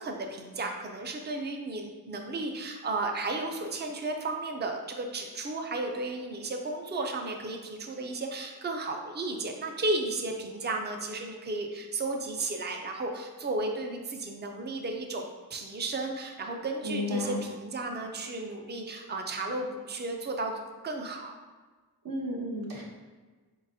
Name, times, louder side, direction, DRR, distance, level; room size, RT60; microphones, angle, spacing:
voice 1, 0.0-15.3 15.5-20.5 20.8-21.4, right 2 dB, 30° right, 3 dB, 0.4 m, -34 dB
voice 2, 16.8-17.4 22.0-22.8, left 1 dB, 60° right, -2 dB, 0.9 m, -32 dB
4.1 x 3.8 x 2.6 m, 1.3 s
wide cardioid pair, 100°, 38 cm